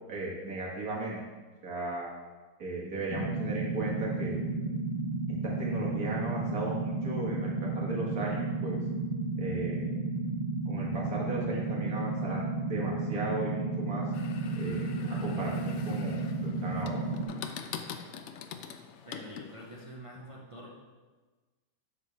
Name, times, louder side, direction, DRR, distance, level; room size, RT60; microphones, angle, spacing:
voice 1, 0.1-1.2 1.6-2.1 2.6-4.4 5.4-8.8 9.4-9.8 10.7-14.0 14.6-17.0, right 2 dB, 65° right, -4 dB, 2.1 m, -36 dB
sound 1, 3.1-17.3, right 3 dB, 85° right, 1.7 m, -32 dB
sound 2, 14.1-19.9, left 7 dB, 70° left, 0.6 m, -44 dB
voice 2, 19.1-20.8, equal, 40° right, -3 dB, 0.5 m, -46 dB
7.0 x 6.7 x 3.4 m, 1.3 s
omnidirectional pair, 1.7 m